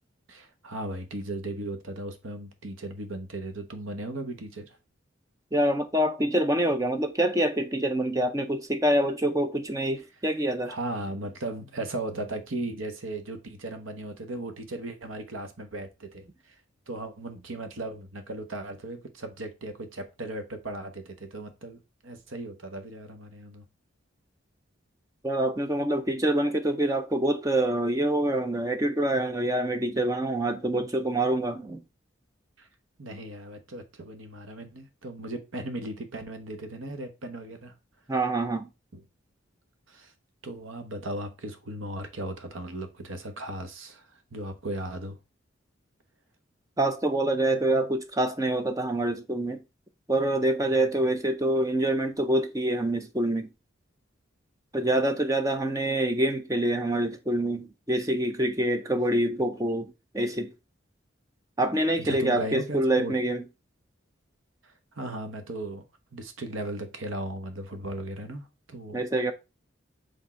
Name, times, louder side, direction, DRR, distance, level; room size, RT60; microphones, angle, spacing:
voice 1, 0.3-4.8 10.7-16.6 16.9-23.6 32.6-32.7 33.0-37.7 39.9-40.1 40.4-45.2 62.0-63.1 64.6-65.8 66.1-69.0, right 1 dB, 90° right, 1.1 m, -37 dB
voice 2, 5.5-10.7 25.2-31.8 38.1-38.7 46.8-49.6 50.1-53.5 54.7-60.5 61.6-63.4 68.9-69.3, right 1 dB, 15° right, 0.5 m, -26 dB
6.1 x 3.6 x 4.3 m
head